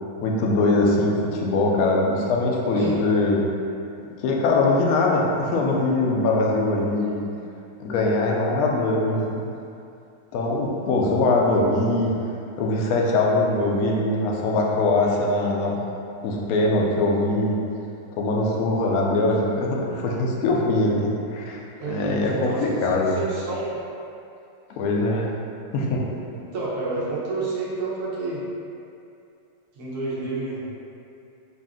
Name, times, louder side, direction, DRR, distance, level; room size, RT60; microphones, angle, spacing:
voice 1, 0.2-3.4 4.2-7.2 7.8-9.4 10.3-12.2 12.6-15.8 16.2-17.6 18.2-21.6 21.9-23.1 24.8-25.3 25.7-26.0, left 2 dB, 70° left, -2 dB, 0.9 m, -22 dB
voice 2, 21.8-23.8 26.5-28.4 29.8-30.6, right 2 dB, 65° right, -7 dB, 1.4 m, -29 dB
4.1 x 2.5 x 3.6 m, 2.6 s
omnidirectional pair, 1.9 m